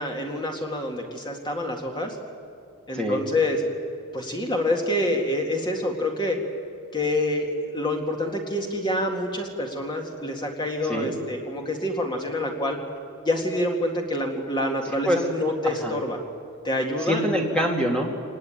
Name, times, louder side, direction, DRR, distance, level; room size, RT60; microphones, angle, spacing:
voice 1, 0.0-2.2 2.9-3.6 4.1-6.4 6.9-12.8 13.3-16.2 16.6-17.2, left 1 dB, 20° left, 1 dB, 2.0 m, -27 dB
voice 2, 15.6-16.0 17.1-18.2, equal, 5° left, 0 dB, 2.4 m, -25 dB
25.0 x 20.0 x 9.1 m, 2.5 s
head